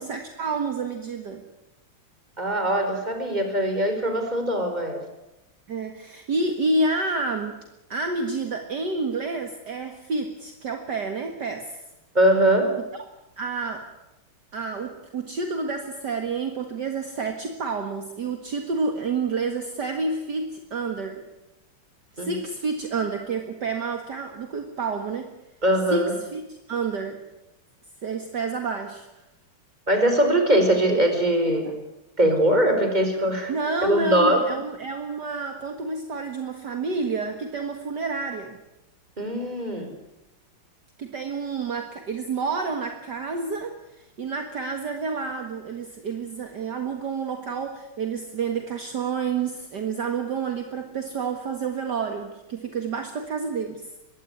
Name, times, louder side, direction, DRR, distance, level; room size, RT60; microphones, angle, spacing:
voice 1, 0.0-1.4 5.7-7.6 7.9-11.8 13.4-13.9 14.5-21.2 22.2-25.3 25.9-27.2 28.0-29.1 31.5-31.8 33.5-38.6 41.0-53.8, right 4 dB, 55° right, 5 dB, 2.3 m, -29 dB
voice 2, 2.4-5.0 12.1-12.7 22.2-22.4 25.6-26.1 29.9-31.7 32.2-33.5 33.8-34.4 39.2-39.9, right 1 dB, 20° right, 6 dB, 4.6 m, -21 dB
22.0 x 17.0 x 9.6 m, 0.94 s
omnidirectional pair, 2.3 m